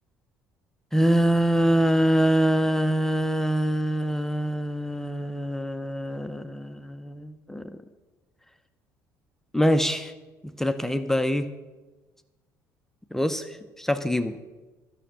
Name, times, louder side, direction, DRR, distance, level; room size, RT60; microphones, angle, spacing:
voice 1, 0.9-7.8 9.5-10.1 10.4-11.5 13.1-14.4, equal, 5° left, 9 dB, 0.7 m, -24 dB
12.5 x 6.5 x 6.7 m, 1.2 s
figure-of-eight pair, 55°, 9 cm